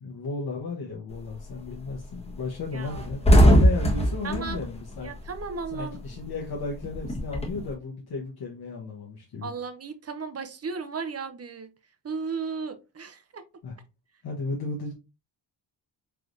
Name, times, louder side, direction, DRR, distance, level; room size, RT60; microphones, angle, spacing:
voice 1, 0.0-5.1 5.7-9.5 13.6-13.8 14.2-14.9, left 4 dB, 60° left, 1.2 m, -34 dB
sound 1, 1.1-1.5 1.9-2.0 2.3-2.4 2.7-5.7 6.0-7.7, equal, 15° left, 1.4 m, -20 dB
voice 2, 2.7-3.1 4.2-4.6 5.0-6.0 9.4-11.7 12.0-13.4, right 5 dB, 35° right, 0.7 m, -35 dB
4.7 x 3.3 x 2.6 m
cardioid pair, 85°, 41 cm